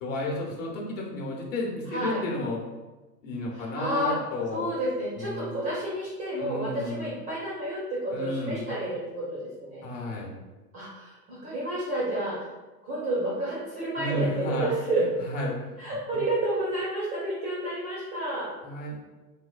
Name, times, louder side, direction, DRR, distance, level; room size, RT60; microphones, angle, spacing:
voice 1, 0.0-2.6 3.2-4.7 5.2-5.5 6.4-7.1 8.1-8.7 9.8-10.3 14.0-14.7 15.2-15.7 18.6-19.0, left 1 dB, 55° left, -2 dB, 0.9 m, -32 dB
voice 2, 1.9-2.2 3.5-4.2 4.5-9.9 10.7-12.5 12.8-15.0 15.8-18.5, right 1 dB, 20° right, -6 dB, 0.4 m, -30 dB
3.2 x 2.1 x 2.3 m, 1.2 s
figure-of-eight pair, 90°, 48 cm